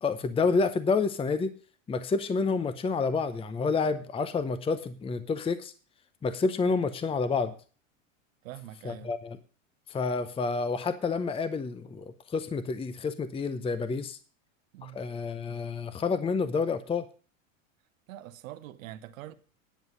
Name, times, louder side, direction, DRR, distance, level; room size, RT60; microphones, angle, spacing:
voice 1, 0.0-1.5 1.9-5.7 6.2-7.5 8.8-9.4 9.9-14.2 14.8-17.0, left 4 dB, 15° left, 0.7 m, -29 dB
voice 2, 8.4-9.1 14.7-15.0 18.1-19.3, right 13 dB, 75° right, 1.1 m, -44 dB
10.5 x 7.9 x 5.3 m
hypercardioid pair, 105°, 40 cm